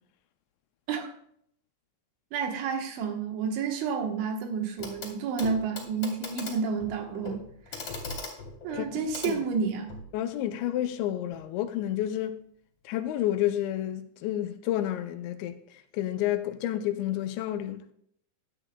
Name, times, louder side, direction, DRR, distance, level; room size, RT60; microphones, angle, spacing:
voice 1, 2.3-7.4 7.7-7.8 8.6-10.0, right 5 dB, 80° right, 3.6 m, -30 dB
Clock, 4.8-5.1 5.4-10.1 11.3-11.4, left 3 dB, 40° left, 2.6 m, -40 dB
voice 2, 8.7-9.4 10.1-12.4 12.9-17.8, left 12 dB, 80° left, 2.7 m, -30 dB
13.5 x 10.0 x 2.2 m
omnidirectional pair, 5.3 m